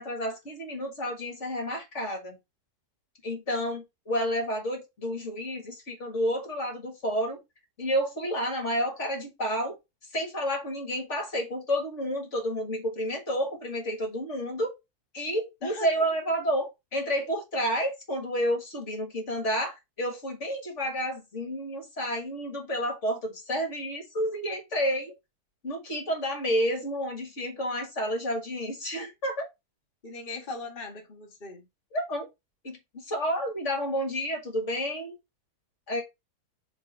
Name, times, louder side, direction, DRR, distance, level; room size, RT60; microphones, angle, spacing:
voice 1, 0.0-2.4 3.2-7.4 7.8-9.8 10.1-14.7 15.1-25.1 25.6-29.4 31.9-32.3 32.6-35.2 35.9-36.0, equal, 45° left, 2.0 m, -30 dB
voice 2, 15.6-16.0 30.0-31.6, left 3 dB, 30° left, 1.6 m, -39 dB
6.7 x 2.9 x 5.3 m
omnidirectional pair, 1.7 m